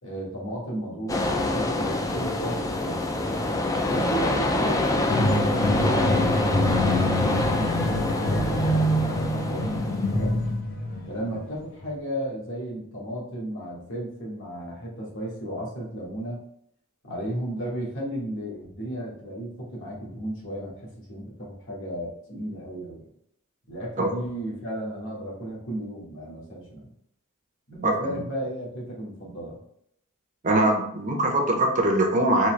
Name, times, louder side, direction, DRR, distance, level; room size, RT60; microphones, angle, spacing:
voice 1, 0.0-3.1 3.8-10.4 11.1-16.4 17.0-23.0 23.7-26.9 27.7-29.6, right 1 dB, 60° left, -4 dB, 1.5 m, -34 dB
sound 1, 1.1-10.3, left 2 dB, 15° left, 0.4 m, -26 dB
sound 2, 5.1-11.5 11.8-11.9, left 1 dB, 45° left, 0.9 m, -26 dB
voice 2, 30.4-32.5, right 1 dB, 35° right, 2 dB, 0.6 m, -22 dB
4.0 x 3.0 x 3.2 m, 0.72 s
head